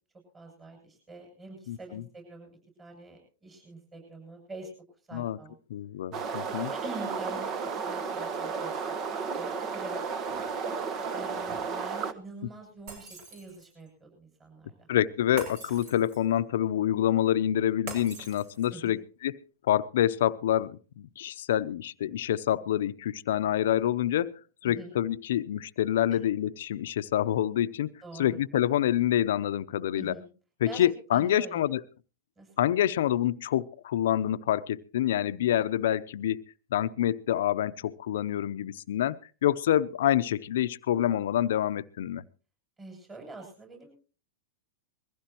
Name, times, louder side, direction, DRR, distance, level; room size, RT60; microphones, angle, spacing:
voice 1, 0.3-2.5 2.8-4.7 5.1-5.6 6.7-8.8 9.4-10.0 11.1-14.9 18.7-19.0 24.6-25.0 26.1-26.2 28.0-28.4 29.9-30.3 30.6-30.8 31.1-31.6 32.4-32.5 42.8-44.0, right 2 dB, 20° right, 2 dB, 7.3 m, -45 dB
voice 2, 1.7-2.0 5.1-5.4 5.7-6.7 14.9-19.4 19.7-27.9 28.2-30.1 30.6-31.8 32.6-36.4 36.7-42.2, left 11 dB, 70° left, 13 dB, 0.7 m, -27 dB
sound 1, 6.1-12.1, right 5 dB, 35° right, 1.3 m, -33 dB
Shatter, 12.9-13.8 15.4-16.4 17.9-18.9, right 3 dB, 55° right, 6.6 m, -43 dB
22.0 x 15.5 x 3.0 m, 0.35 s
hypercardioid pair, 120°, 0 cm